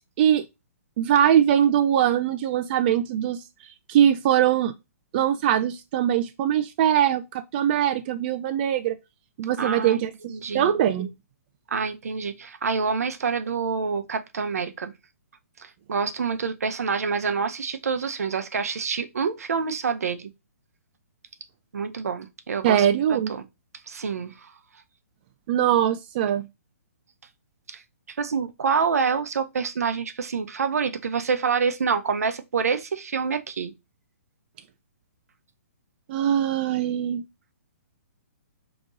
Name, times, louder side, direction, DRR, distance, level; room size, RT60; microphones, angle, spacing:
voice 1, 1.0-3.4 3.9-4.7 5.1-9.0 9.4-11.1 22.6-23.3 25.5-26.5 36.1-37.2, right 10 dB, 40° right, 0.3 m, -22 dB
voice 2, 9.6-10.0 10.3-10.7 11.7-14.9 15.6-20.3 21.7-23.4 23.9-24.5 27.7-27.8 28.1-33.7, right 5 dB, 75° right, 0.7 m, -27 dB
5.2 x 2.9 x 2.5 m
hypercardioid pair, 140°, 8 cm